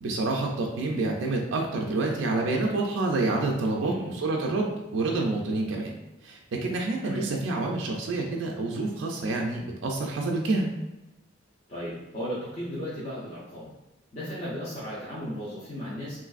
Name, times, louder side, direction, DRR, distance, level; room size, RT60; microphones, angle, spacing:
voice 1, 0.0-6.0 6.2-10.7, right 2 dB, 75° right, 0 dB, 0.4 m, -28 dB
voice 2, 3.8-4.1 7.0-7.2 11.7-13.7 14.1-16.2, equal, 35° left, -10 dB, 0.7 m, -35 dB
3.2 x 2.6 x 2.4 m, 1.0 s
head